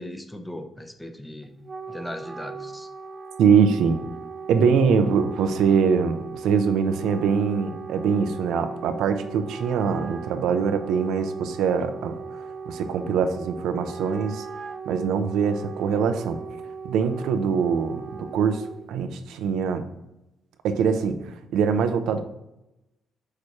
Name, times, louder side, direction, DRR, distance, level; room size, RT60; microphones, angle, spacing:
voice 1, 0.0-1.6 1.9-2.9, left 1 dB, 10° left, 6 dB, 0.9 m, -38 dB
Wind instrument woodwind instrument, 1.4-18.9, right 5 dB, 35° right, 0.5 m, -38 dB
voice 2, 3.4-4.0 4.5-12.2 12.7-14.4 14.9-16.4 16.8-18.6 18.9-19.9 20.6-22.2, right 6 dB, 85° right, 9 dB, 0.7 m, -23 dB
7.1 x 6.5 x 3.3 m, 0.91 s
cardioid pair, 90°, 0 cm